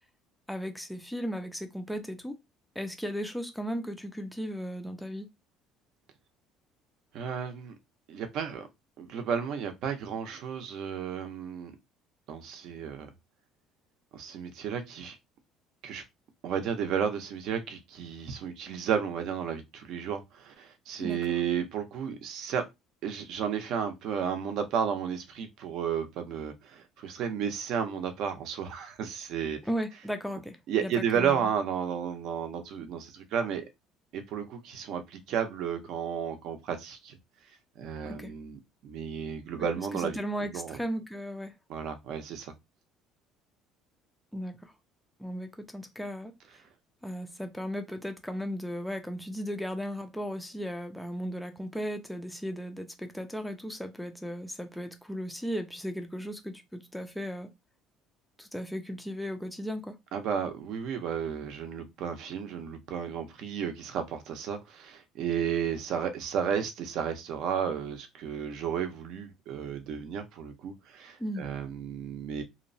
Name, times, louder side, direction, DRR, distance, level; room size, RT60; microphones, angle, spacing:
voice 1, 0.5-2.3 2.8-5.3 21.0-21.2 29.6-31.5 38.0-38.3 39.6-41.5 44.3-44.7 45.2-46.3 47.0-57.5 58.4-60.0 71.2-71.5, equal, ahead, 0.3 m, -36 dB
voice 2, 7.1-7.8 8.1-8.7 9.0-11.8 12.3-13.1 14.1-15.2 15.8-16.0 16.4-22.6 23.0-29.6 30.7-33.6 34.1-37.2 37.8-40.2 40.5-40.8 41.7-42.5 60.1-72.4, right 7 dB, 55° right, 0.6 m, -33 dB
2.8 x 2.0 x 2.6 m
cardioid pair, 160°, 0 cm